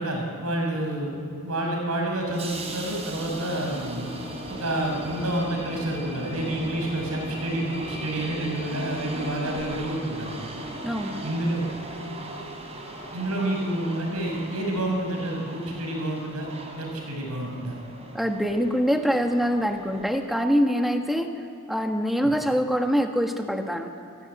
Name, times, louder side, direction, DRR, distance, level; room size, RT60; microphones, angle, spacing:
voice 1, 0.0-4.1 4.5-10.4 11.2-11.7 13.1-16.5 16.8-17.7, right 1 dB, 75° right, 1 dB, 5.7 m, -29 dB
sound 1, 2.0-20.3, right 1 dB, 30° right, 3.3 m, -38 dB
voice 2, 10.8-11.2 18.1-21.3 21.7-23.9, equal, ahead, 4 dB, 1.5 m, -24 dB
28.0 x 16.5 x 9.8 m, 2.5 s
head